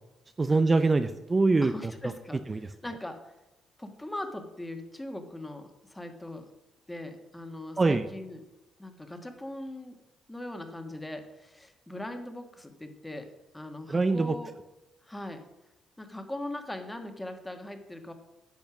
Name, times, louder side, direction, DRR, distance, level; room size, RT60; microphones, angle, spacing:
voice 1, 0.4-1.9 2.5-2.7 7.8-8.1 13.9-14.3, right 3 dB, 25° right, 9 dB, 0.6 m, -24 dB
voice 2, 1.6-3.3 3.8-6.5 6.9-8.4 8.8-10.0 10.3-14.5 15.0-15.4 16.0-18.1, left 1 dB, 10° left, 6 dB, 1.7 m, -40 dB
11.0 x 6.9 x 6.1 m, 0.99 s
cardioid pair, 90°, 0 cm